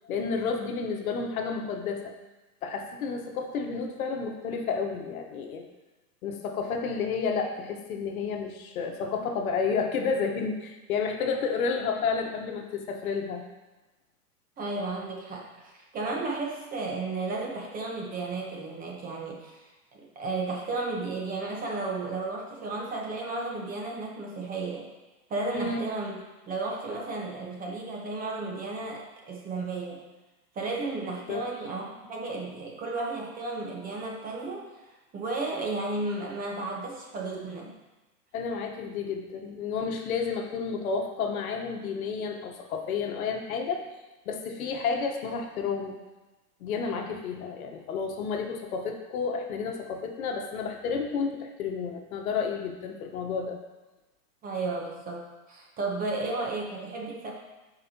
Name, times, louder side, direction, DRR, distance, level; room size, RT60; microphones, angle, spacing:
voice 1, 0.0-2.1 2.6-5.6 6.2-13.4 25.5-25.8 31.3-31.4 38.3-43.9 44.3-46.0 46.6-53.6, left 5 dB, 65° left, 3 dB, 1.3 m, -31 dB
voice 2, 14.6-19.7 19.9-24.9 25.3-26.2 26.5-30.0 30.5-34.7 35.1-37.7 54.4-57.3, right 3 dB, 20° right, -1 dB, 1.1 m, -33 dB
12.0 x 5.0 x 2.9 m, 1.1 s
hypercardioid pair, 135°, 46 cm